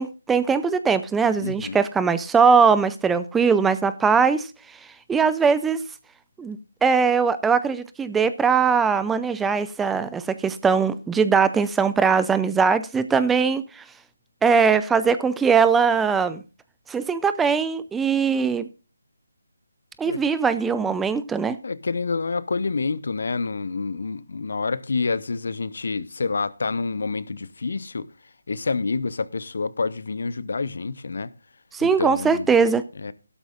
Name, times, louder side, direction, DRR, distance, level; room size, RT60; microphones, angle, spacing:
voice 1, 0.0-4.5 5.1-5.8 6.4-13.8 14.4-16.4 16.9-18.7 20.0-21.6 31.7-32.8, right 5 dB, 5° right, 0.5 m, -21 dB
voice 2, 1.4-1.8 20.0-20.2 21.6-28.1 28.5-31.3 31.8-32.5 33.0-33.1, left 4 dB, 55° left, 0.9 m, -28 dB
15.5 x 12.5 x 2.5 m
figure-of-eight pair, 155°, 0 cm